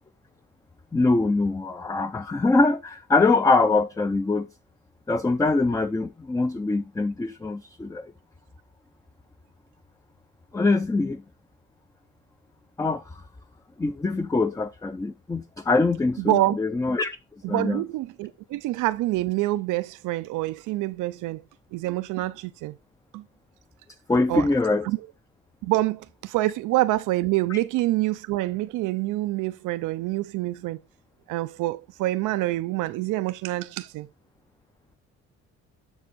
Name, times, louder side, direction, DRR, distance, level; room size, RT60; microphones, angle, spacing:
voice 1, 0.9-4.5 5.1-8.1 10.5-11.2 12.8-13.2 13.8-17.2 17.5-17.8 24.1-24.9 27.5-27.6, left 3 dB, 10° left, 0.4 m, -23 dB
voice 2, 16.2-16.6 17.4-21.4 21.7-22.7 23.1-23.2 24.3-24.5 24.8-25.0 25.6-30.8 31.3-34.1, right 17 dB, 90° right, 0.5 m, -26 dB
6.9 x 6.2 x 4.1 m
cardioid pair, 90°, 30 cm